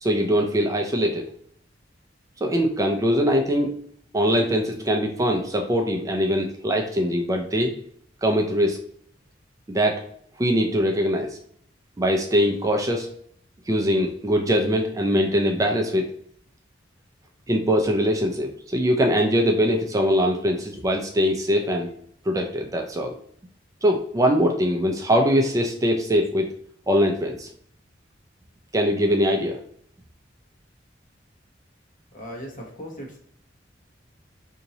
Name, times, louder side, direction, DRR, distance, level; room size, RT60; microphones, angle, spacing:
voice 1, 0.0-1.2 2.4-3.7 4.1-7.7 8.2-8.8 9.7-10.0 10.4-11.4 12.0-13.1 13.7-16.1 17.5-21.9 22.3-23.1 23.8-26.5 26.9-27.5 28.7-29.6, equal, 20° right, 2 dB, 0.4 m, -22 dB
voice 2, 32.1-33.2, equal, 45° left, 0 dB, 1.0 m, -38 dB
2.8 x 2.7 x 3.9 m, 0.64 s
head